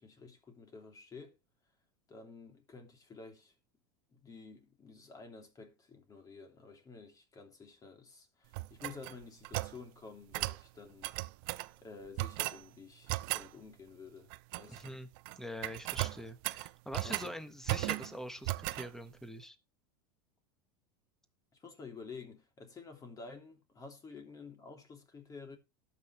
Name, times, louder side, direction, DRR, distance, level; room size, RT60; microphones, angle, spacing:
voice 1, 0.0-1.4 2.1-3.5 4.1-11.1 11.8-15.0 17.0-17.3 21.6-25.6, left 4 dB, 25° left, 3.1 m, -51 dB
sound 1, 8.5-9.8 10.3-10.6 11.0-11.7 12.2-12.6 13.1-13.5 14.3-14.9 15.2-15.4 15.6-17.3 17.7-18.1 18.4-18.9, right 22 dB, 65° right, 0.5 m, -36 dB
voice 2, 14.7-15.1 15.4-19.6, left 1 dB, 5° left, 1.4 m, -44 dB
18.0 x 6.1 x 3.2 m
hypercardioid pair, 95°, 13 cm